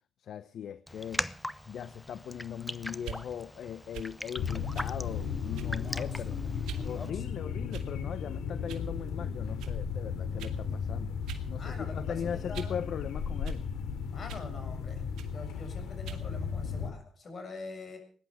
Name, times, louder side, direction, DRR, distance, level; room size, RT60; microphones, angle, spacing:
voice 1, 0.2-1.3 1.7-6.3 6.8-11.1 11.5-13.7, left 8 dB, 65° left, 15 dB, 0.8 m, -39 dB
Raindrop, 0.9-7.1, left 1 dB, 5° left, 0.8 m, -41 dB
sound 1, 3.0-3.2 3.9-4.1 4.7-4.9 5.5-5.9 6.6-6.9 7.7-8.1 8.7-8.9 9.6-9.8 10.4-10.6 11.3-11.5 11.8-12.8 13.4-13.6 14.3-14.5 15.2-15.4 16.0-16.3, right 10 dB, 85° right, 2.3 m, -44 dB
sound 2, 4.4-16.9, left 6 dB, 85° left, 2.9 m, -35 dB
voice 2, 6.8-7.5 11.5-12.2 12.5-12.8 14.1-15.0 15.3-18.0, left 3 dB, 45° left, 5 dB, 7.4 m, -44 dB
20.5 x 11.0 x 6.5 m, 0.44 s
cardioid pair, 90°, 0 cm